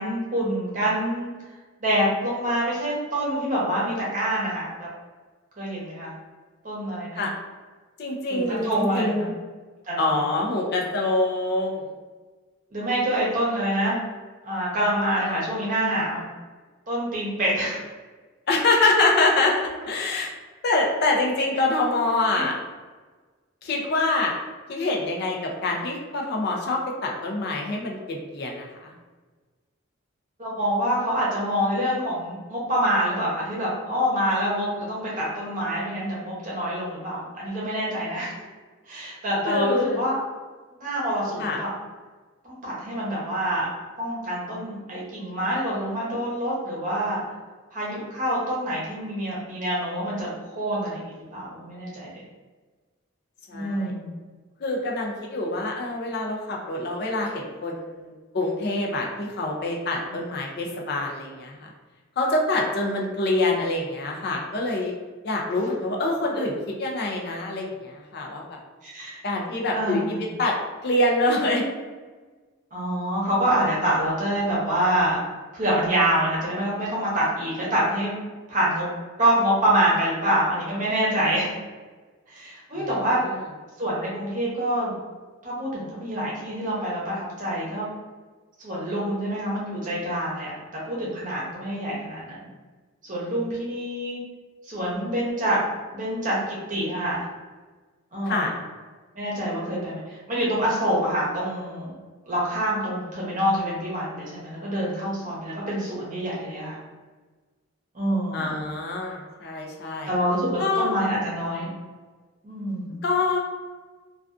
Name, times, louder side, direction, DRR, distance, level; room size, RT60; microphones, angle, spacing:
voice 1, 0.0-1.3 1.8-4.9 5.6-6.1 6.6-7.2 8.3-9.3 9.9-10.2 12.7-14.0 14.4-16.2 16.9-17.8 30.4-38.4 38.9-40.2 40.8-41.7 42.4-43.7 44.0-47.2 47.7-52.1 53.5-54.1 60.1-60.2 68.8-69.2 69.7-70.3 72.7-75.2 75.5-78.1 78.5-78.9 79.2-81.5 82.3-83.2 83.8-84.9 85.4-87.9 88.6-90.5 90.8-92.5 93.0-94.2 94.7-95.6 95.9-97.3 98.1-98.5 99.1-101.9 102.2-106.8 107.9-108.5 110.1-111.7 112.4-112.9, right 1 dB, 40° right, -6 dB, 0.8 m, -26 dB
voice 2, 8.0-9.3 10.0-11.8 18.5-19.5 19.9-20.3 20.6-22.6 23.6-24.3 24.7-28.9 39.5-40.0 41.4-41.6 53.5-53.9 54.6-61.5 62.2-64.9 65.2-68.6 69.2-70.0 70.4-70.5 70.8-71.6 82.8-82.9 98.3-98.5 108.3-110.1 110.6-110.9 113.0-113.4, left 2 dB, 50° left, 0 dB, 0.4 m, -25 dB
2.4 x 2.3 x 2.4 m, 1.3 s
head